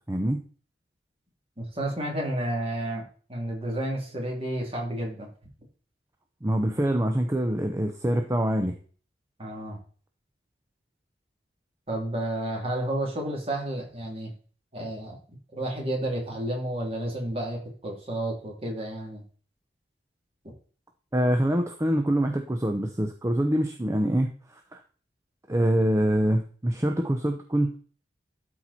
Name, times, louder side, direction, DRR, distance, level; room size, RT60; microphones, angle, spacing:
voice 1, 0.1-0.4 6.4-8.7 21.1-24.8 25.5-27.7, right 1 dB, 15° right, 5 dB, 0.7 m, -25 dB
voice 2, 1.6-5.3 9.4-9.8 11.9-14.3 14.7-15.2 15.5-19.2, right 1 dB, 35° right, 0 dB, 2.9 m, -31 dB
12.5 x 4.6 x 4.2 m, 0.41 s
head